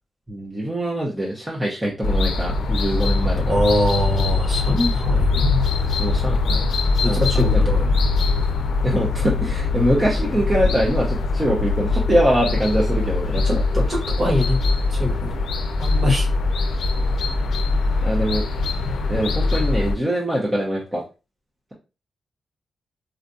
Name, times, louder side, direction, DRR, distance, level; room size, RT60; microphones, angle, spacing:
voice 1, 0.3-3.6 5.9-6.6 7.0-7.2 7.5-7.6 8.8-13.6 18.0-18.4 19.1-21.0, equal, 15° right, -3 dB, 0.7 m, -23 dB
sound 1, 2.0-19.9, left 3 dB, 90° left, 0.5 m, -22 dB
voice 2, 3.5-5.6 7.0-7.9 13.4-14.6 14.9-15.3 15.8-16.3, left 1 dB, 35° right, 0 dB, 1.3 m, -23 dB
4.3 x 2.4 x 2.5 m, 0.30 s
cardioid pair, 110°, 0 cm